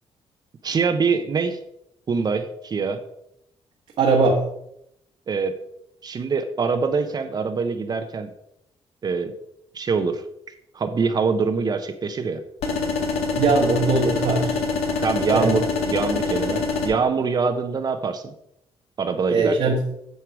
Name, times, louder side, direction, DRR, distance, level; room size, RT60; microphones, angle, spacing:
voice 1, 0.6-1.6 2.1-3.0 5.3-5.6 6.0-8.3 9.0-9.3 9.7-10.2 10.7-12.4 15.0-18.3 19.0-19.8, right 5 dB, 40° right, 7 dB, 0.8 m, -24 dB
voice 2, 4.0-4.4 13.3-14.6 15.3-15.5 19.3-19.8, right 3 dB, 70° right, -1 dB, 1.5 m, -20 dB
sound 1, 12.6-16.9, left 4 dB, 85° left, 1.7 m, -25 dB
9.4 x 6.6 x 4.7 m, 0.78 s
cardioid pair, 120°, 11 cm